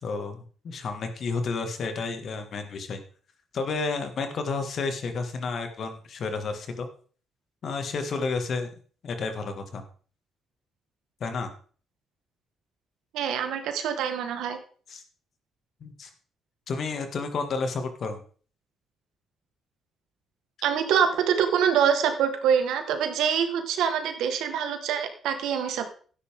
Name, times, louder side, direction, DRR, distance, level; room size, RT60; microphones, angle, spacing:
voice 1, 0.0-3.0 3.5-6.9 7.6-8.7 9.0-9.8 11.2-11.5 14.9-15.0 15.8-16.1 16.7-18.2, left 4 dB, 55° left, 7 dB, 2.2 m, -31 dB
voice 2, 13.1-14.6 20.6-25.9, right 8 dB, 85° right, 6 dB, 1.7 m, -25 dB
12.5 x 9.9 x 3.8 m, 0.42 s
cardioid pair, 90°, 0 cm